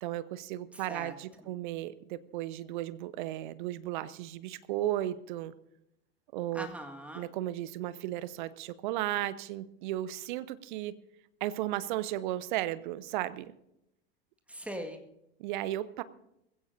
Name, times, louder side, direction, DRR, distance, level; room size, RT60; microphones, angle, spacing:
voice 1, 0.0-5.5 6.3-6.7 7.1-10.9 11.4-13.5 15.4-16.0, right 14 dB, 50° right, 16 dB, 0.9 m, -35 dB
voice 2, 0.7-1.1 1.4-1.6 6.5-7.3 14.5-15.0, equal, 5° right, 4 dB, 1.9 m, -41 dB
21.0 x 16.5 x 2.7 m, 0.81 s
figure-of-eight pair, 80°, 30 cm